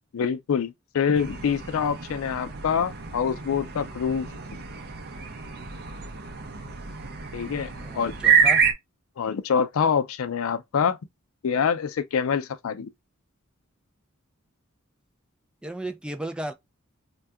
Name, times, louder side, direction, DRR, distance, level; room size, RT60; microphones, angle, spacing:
voice 1, 0.1-4.3 7.3-8.1 9.2-11.0 11.4-12.9, left 6 dB, 85° left, 0.4 m, -26 dB
sound 1, 1.1-8.7, right 6 dB, 50° right, 0.6 m, -27 dB
voice 2, 7.8-8.6 15.6-16.5, right 1 dB, 5° right, 0.3 m, -34 dB
2.7 x 2.3 x 3.4 m
head